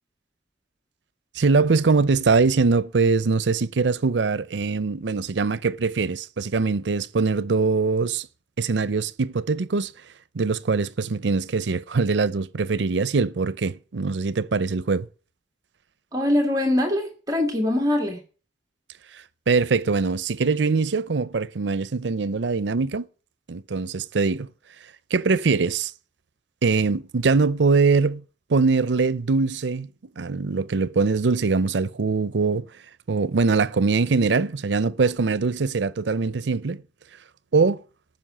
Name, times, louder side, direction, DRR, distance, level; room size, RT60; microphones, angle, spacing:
voice 1, 1.3-8.3 8.6-9.9 10.3-15.1 19.5-23.1 23.5-24.5 25.1-25.9 26.6-28.2 28.5-29.9 30.2-32.7 33.1-36.8 37.5-37.8, right 4 dB, 85° right, 0.6 m, -22 dB
voice 2, 16.1-18.2, left 1 dB, 20° right, 2.0 m, -23 dB
14.0 x 6.0 x 8.7 m
head